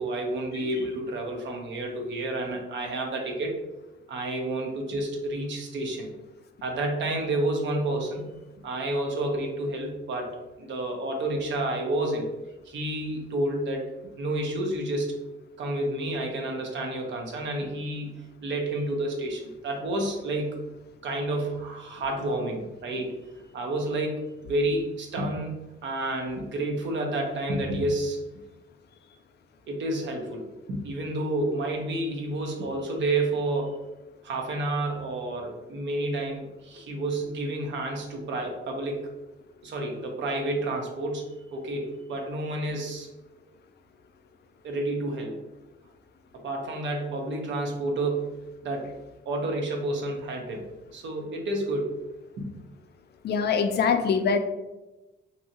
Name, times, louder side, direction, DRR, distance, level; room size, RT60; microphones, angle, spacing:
voice 1, 0.0-3.6 4.1-6.1 6.6-8.3 8.6-12.3 12.6-13.9 14.2-15.2 15.6-20.6 21.0-23.2 23.5-25.5 25.8-28.2 29.7-33.9 34.2-39.1 39.6-43.1 44.6-45.4 46.3-49.0 49.3-50.7 50.9-52.0 52.4-52.5, right 1 dB, 65° right, 1 dB, 0.7 m, -30 dB
voice 2, 53.2-54.4, left 6 dB, 55° left, 7 dB, 0.4 m, -23 dB
2.8 x 2.6 x 2.7 m, 1.0 s
cardioid pair, 90°, 20 cm